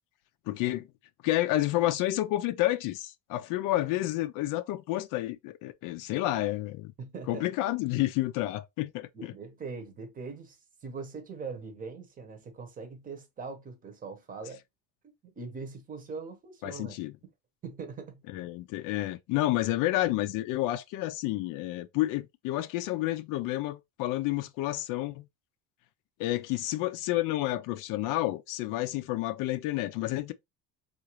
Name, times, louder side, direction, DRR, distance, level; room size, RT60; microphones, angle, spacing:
voice 1, 0.5-0.8 1.2-6.9 7.3-9.1 16.6-17.1 18.3-25.3 26.2-30.3, left 16 dB, 75° left, 0.5 m, -30 dB
voice 2, 7.0-7.5 9.1-14.6 15.2-17.0 17.6-18.2, right 4 dB, 25° right, 0.8 m, -41 dB
3.7 x 2.5 x 3.0 m
cardioid pair, 170°, 32 cm